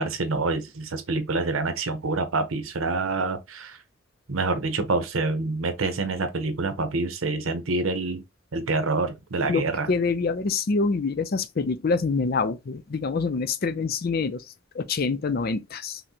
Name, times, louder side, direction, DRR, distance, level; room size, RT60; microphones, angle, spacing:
voice 1, 0.0-3.8 4.3-8.2 8.5-9.9, right 3 dB, 85° right, 0.8 m, -27 dB
voice 2, 9.5-14.4 14.7-16.0, left 4 dB, 50° left, 0.5 m, -26 dB
5.8 x 2.2 x 2.8 m
head